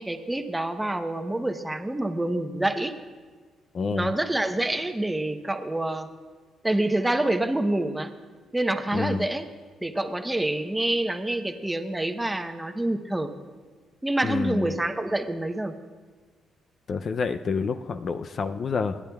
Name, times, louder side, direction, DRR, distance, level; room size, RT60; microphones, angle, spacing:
voice 1, 0.0-2.9 3.9-6.1 6.6-8.1 8.5-9.5 9.8-13.3 14.0-15.7, right 1 dB, 10° right, 7 dB, 0.8 m, -27 dB
voice 2, 3.7-4.1 8.9-9.3 14.2-14.8 16.9-19.0, left 5 dB, 50° left, 9 dB, 0.4 m, -28 dB
29.5 x 10.5 x 2.3 m, 1.5 s
cardioid pair, 90°, 0 cm